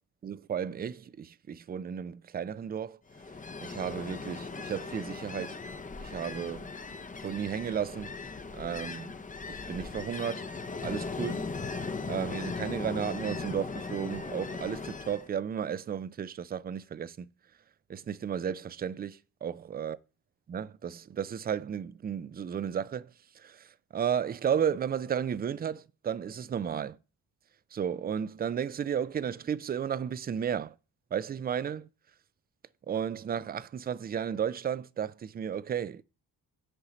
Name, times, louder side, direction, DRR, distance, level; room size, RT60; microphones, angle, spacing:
voice 1, 0.2-3.0 3.6-5.6 6.0-6.7 7.2-8.1 8.5-9.2 9.5-10.5 10.8-11.5 12.0-17.3 17.9-20.0 20.5-23.1 23.4-27.0 27.7-30.7 31.1-31.9 32.9-36.0, right 8 dB, 25° right, 0.3 m, -33 dB
Ocean, 3.1-15.3, left 4 dB, 15° left, 0.6 m, -38 dB
6.7 x 4.8 x 4.1 m
hypercardioid pair, 45°, 46 cm